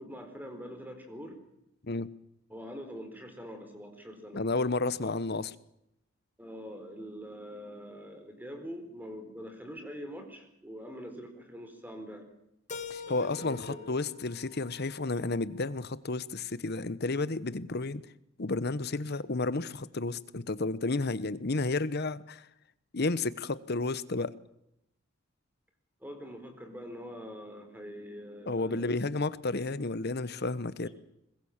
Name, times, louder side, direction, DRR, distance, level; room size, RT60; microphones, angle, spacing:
voice 1, 0.0-1.4 2.5-4.4 5.0-5.1 6.4-12.3 13.1-13.9 26.0-29.2 30.8-30.9, equal, 10° right, 6 dB, 4.3 m, -44 dB
voice 2, 4.3-5.5 12.9-18.0 18.4-22.4 22.9-24.3 28.5-30.9, left 3 dB, 50° left, 16 dB, 1.0 m, -31 dB
Keyboard (musical), 12.7-15.6, left 5 dB, 35° left, 1.8 m, -45 dB
22.5 x 21.0 x 7.3 m, 0.80 s
head